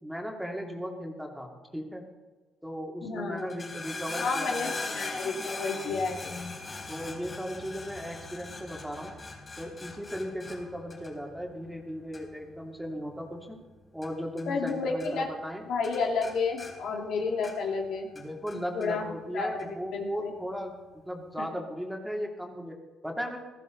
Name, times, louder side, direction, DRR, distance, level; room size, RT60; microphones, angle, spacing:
voice 1, 0.0-2.1 2.6-4.8 6.9-9.1 9.6-13.6 13.9-15.6 18.1-20.8 21.0-23.4, equal, 5° right, 0 dB, 2.8 m, -37 dB
voice 2, 3.0-3.5 4.2-6.5 14.5-15.3 15.7-18.1 18.5-19.1 19.3-20.3 21.4-21.5, left 4 dB, 80° left, 1 dB, 2.4 m, -31 dB
sound 1, 3.4-14.7 15.0-15.6 15.8-17.8 18.1-18.9 19.6-19.7, left 3 dB, 30° left, 4.2 m, -40 dB
18.0 x 14.5 x 4.0 m, 1.2 s
cardioid pair, 90°, 0 cm